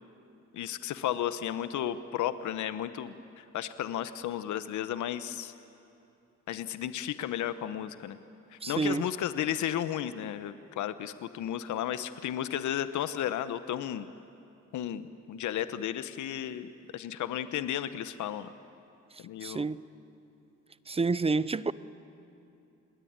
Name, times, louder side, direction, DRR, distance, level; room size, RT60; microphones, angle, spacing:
voice 1, 0.5-5.5 6.5-8.2 8.5-14.1 14.7-18.5 19.2-19.6, left 11 dB, 75° left, 1.0 m, -33 dB
voice 2, 8.6-9.0 19.4-19.8 20.9-21.7, right 4 dB, 20° right, 0.6 m, -28 dB
28.0 x 20.5 x 8.8 m
cardioid pair, 90°, 30 cm